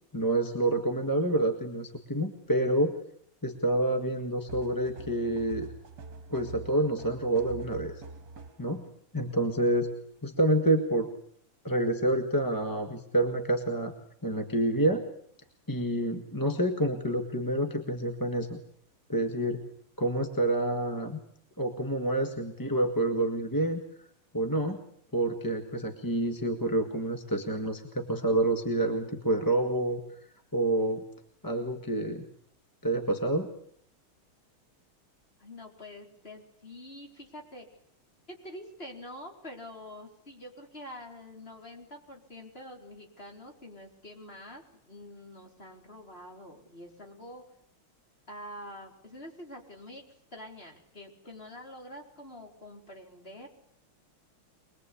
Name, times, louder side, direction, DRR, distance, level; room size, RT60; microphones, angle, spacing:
voice 1, 0.1-3.0 3.4-5.7 6.3-8.0 8.6-8.9 9.1-9.9 10.2-11.1 11.6-13.9 14.2-15.0 15.7-18.6 19.1-19.6 20.0-21.2 21.6-23.8 24.3-24.8 25.1-30.0 30.5-31.0 31.4-32.2 32.8-33.5, right 1 dB, 10° left, 5 dB, 1.5 m, -28 dB
sound 1, 4.5-8.7, right 4 dB, 50° right, 2.3 m, -44 dB
voice 2, 35.4-37.7 38.3-47.4 48.3-50.0 50.3-53.5, left 1 dB, 25° left, 1 dB, 4.5 m, -46 dB
24.5 x 21.5 x 8.5 m, 0.68 s
omnidirectional pair, 2.3 m